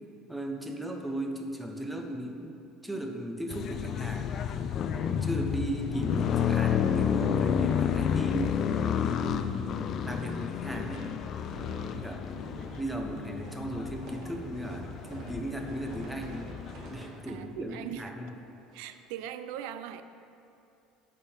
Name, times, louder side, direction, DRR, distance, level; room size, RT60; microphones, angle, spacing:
voice 1, 0.3-2.5 2.8-4.4 4.9-8.7 9.0-11.1 11.9-12.4 12.8-16.5 16.9-18.3, right 1 dB, 5° right, 3 dB, 0.8 m, -36 dB
sound 1, 3.5-16.9, left 8 dB, 45° left, 0.4 m, -31 dB
sound 2, 4.7-6.9 7.2-7.3 7.6-18.8, right 1 dB, 55° right, 2.0 m, -48 dB
voice 2, 11.9-12.3 17.3-18.1 18.7-20.0, right 10 dB, 80° right, 11 dB, 0.4 m, -41 dB
8.7 x 5.4 x 5.6 m, 2.7 s
supercardioid pair, 125°, 0 cm